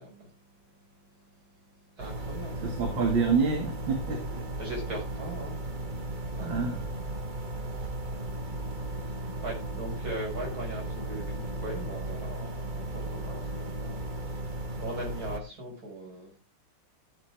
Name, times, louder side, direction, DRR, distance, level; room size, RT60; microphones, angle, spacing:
voice 1, 0.0-2.7 4.6-7.2 7.6-16.4, right 1 dB, 45° right, 5.6 m, -41 dB
sound 1, 2.0-15.4, right 1 dB, 30° right, 1.1 m, -36 dB
voice 2, 2.6-4.4 6.4-6.9, right 4 dB, 65° right, 2.6 m, -27 dB
15.0 x 8.4 x 3.4 m
omnidirectional pair, 2.2 m